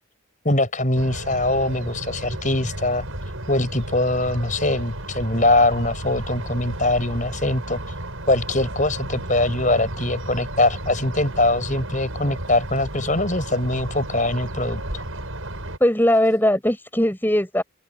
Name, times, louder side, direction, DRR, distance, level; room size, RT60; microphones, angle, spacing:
voice 1, 0.4-3.0 3.5-7.8 8.3-15.0, left 2 dB, 40° left, 6.8 m, -22 dB
sound 1, 0.9-15.8, right 1 dB, 80° right, 6.8 m, -33 dB
voice 2, 15.8-17.6, left 1 dB, 10° left, 4.8 m, -19 dB
open air
head